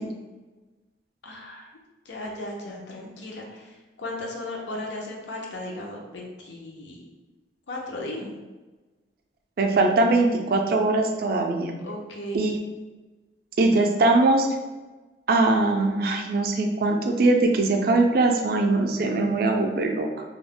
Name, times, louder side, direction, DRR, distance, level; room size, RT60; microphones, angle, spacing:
voice 1, 1.2-1.7 2.1-7.0 7.7-8.4 11.8-12.4, left 1 dB, 80° left, 0 dB, 0.5 m, -36 dB
voice 2, 9.6-11.8 12.3-12.6 13.6-14.5 15.3-20.1, right 2 dB, 55° right, 3 dB, 0.3 m, -21 dB
2.3 x 2.0 x 3.5 m, 1.2 s
head